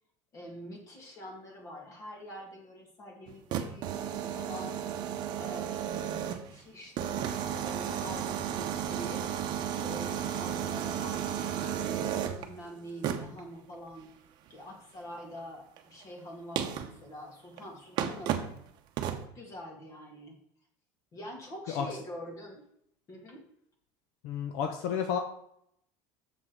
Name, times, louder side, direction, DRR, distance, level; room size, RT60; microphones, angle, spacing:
voice 1, 0.3-4.8 5.4-9.3 9.8-14.1 14.5-18.5 19.1-20.4 21.1-22.6 23.1-23.4, equal, 30° left, 2 dB, 2.1 m, -45 dB
sound 1, 3.3-6.5 7.0-12.5 13.0-13.4 15.8-15.9 16.6-16.9 17.6-17.7 18.0-18.6 19.0-19.3, right 9 dB, 45° right, 0.8 m, -33 dB
voice 2, 24.2-25.2, left 7 dB, 70° left, 6 dB, 0.9 m, -31 dB
7.2 x 6.2 x 4.6 m, 0.71 s
cardioid pair, 160°, 10 cm